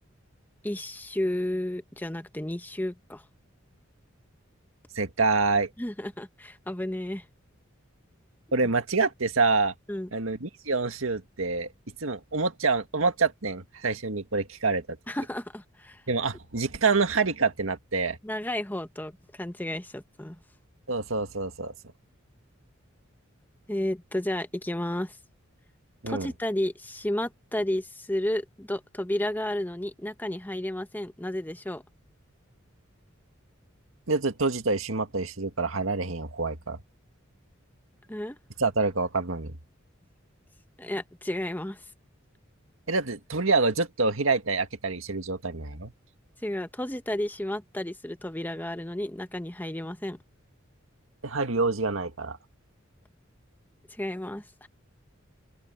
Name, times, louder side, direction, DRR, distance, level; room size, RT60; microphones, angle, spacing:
voice 1, 0.6-3.2 5.8-7.2 9.9-10.1 15.1-16.0 18.2-20.4 23.7-25.2 26.1-31.8 38.1-38.4 40.8-41.8 46.4-50.2 54.0-54.7, left 1 dB, 10° left, 1.1 m, -32 dB
voice 2, 4.9-5.7 8.5-9.7 10.1-11.7 12.0-14.8 16.1-18.2 20.9-21.7 26.0-26.3 34.1-36.8 38.6-39.6 42.9-45.9 51.2-52.4, right 3 dB, 85° right, 1.9 m, -26 dB
open air
head